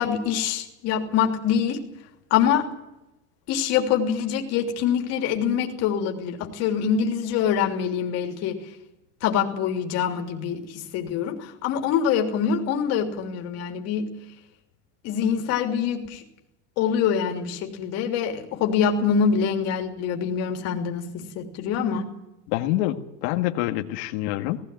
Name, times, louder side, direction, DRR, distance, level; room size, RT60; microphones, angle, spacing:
voice 1, 0.0-1.8 2.3-2.6 3.5-8.6 9.2-14.1 15.0-16.2 16.8-22.1, left 7 dB, 45° left, 3 dB, 3.2 m, -25 dB
voice 2, 22.5-24.6, left 15 dB, 65° left, 5 dB, 1.9 m, -26 dB
18.5 x 16.5 x 9.2 m, 0.90 s
cardioid pair, 175°, 36 cm